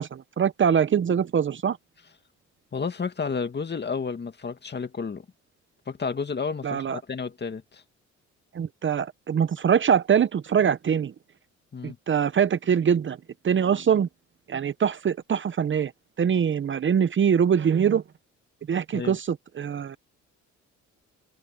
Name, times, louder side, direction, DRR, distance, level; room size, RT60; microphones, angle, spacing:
voice 1, 0.0-1.8 6.6-7.0 8.5-11.1 11.8-13.2 13.4-14.1 14.5-15.9 16.2-18.0 18.7-20.0, right 8 dB, 40° right, 0.8 m, -23 dB
voice 2, 2.7-5.3 5.9-7.8 11.7-12.0 18.9-19.2, left 5 dB, 35° left, 2.2 m, -31 dB
cardioid pair, 90°, 30 cm